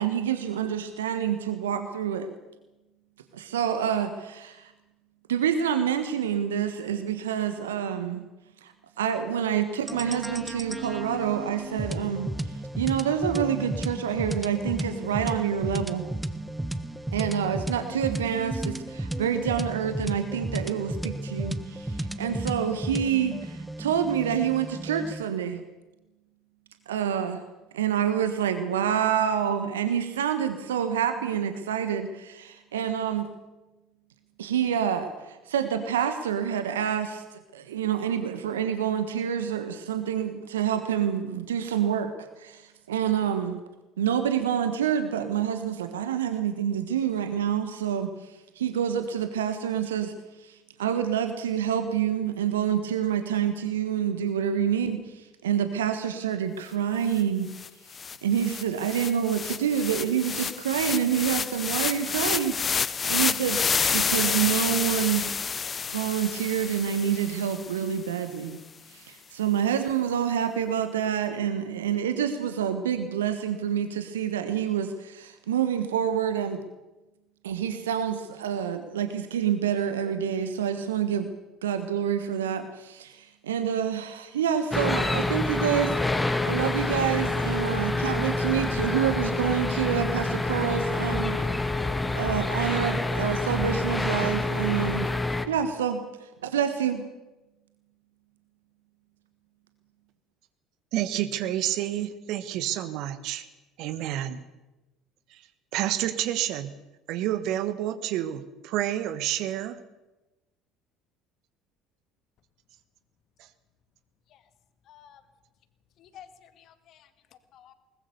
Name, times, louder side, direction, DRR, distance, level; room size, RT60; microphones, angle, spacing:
voice 1, 0.0-2.3 3.3-4.7 5.3-8.3 8.6-12.3 12.8-16.0 17.1-25.6 26.9-27.4 27.7-33.3 34.4-37.2 37.5-42.1 42.4-43.6 44.0-50.1 50.4-57.5 58.2-65.3 65.9-68.6 68.9-76.6 77.4-81.3 81.6-85.9 86.4-91.4 92.1-95.1 95.5-96.0 96.4-97.1, right 8 dB, 75° right, 8 dB, 1.4 m, -27 dB
sound 1, 9.9-25.2, right 1 dB, 5° right, 1.5 m, -34 dB
sound 2, 57.2-57.3 57.5-67.9, left 6 dB, 30° left, 0.7 m, -29 dB
sound 3, 84.7-95.5, left 2 dB, 15° left, 2.0 m, -27 dB
voice 2, 100.9-103.5 103.8-104.4 105.3-105.4 105.7-106.7 107.1-109.8 113.4-113.5, right 12 dB, 60° right, 11 dB, 1.4 m, -29 dB
voice 3, 114.9-115.2 116.0-117.1 117.5-117.7, left 9 dB, 50° left, 11 dB, 2.1 m, -52 dB
21.5 x 20.0 x 7.0 m, 1.1 s
figure-of-eight pair, 60°, 0 cm